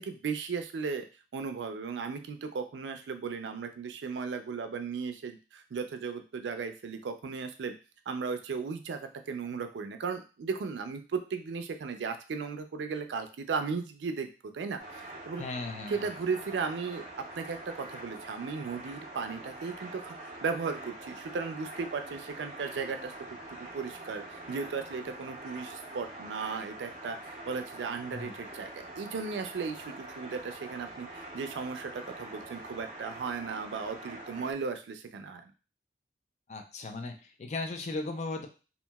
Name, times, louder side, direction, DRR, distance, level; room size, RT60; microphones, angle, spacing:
voice 1, 0.1-1.0 1.3-7.7 8.1-9.0 9.3-15.4 15.9-17.0 17.4-23.1 23.5-35.5, right 5 dB, 85° right, 8 dB, 0.4 m, -36 dB
sound 1, 14.8-34.5, right 1 dB, 45° right, 0.6 m, -45 dB
voice 2, 15.4-15.9 28.1-28.3 36.5-38.5, left 3 dB, 40° left, 5 dB, 0.4 m, -36 dB
2.8 x 2.6 x 2.2 m, 0.33 s
head